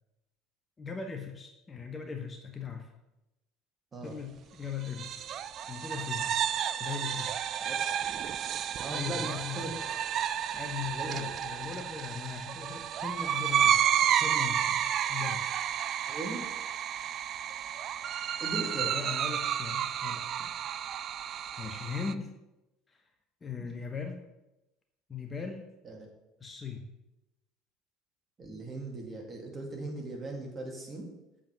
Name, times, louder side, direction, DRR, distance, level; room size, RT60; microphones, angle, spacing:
voice 1, 0.8-2.9 4.0-5.2 5.7-6.4 6.8-7.3 8.9-9.8 10.5-15.7 18.8-20.5 21.1-22.3 22.9-23.0 23.4-24.2 25.1-25.6 26.4-26.9, left 6 dB, 25° left, 4 dB, 1.0 m, -39 dB
sound 1, 4.8-22.1, right 9 dB, 45° right, 0.4 m, -31 dB
voice 2, 8.8-9.9 10.9-11.3 16.1-16.4 18.4-18.9 23.6-23.8 25.8-26.1 28.4-31.1, right 2 dB, 30° right, 0 dB, 2.4 m, -39 dB
7.2 x 5.1 x 6.0 m, 0.96 s
figure-of-eight pair, 70°, 0 cm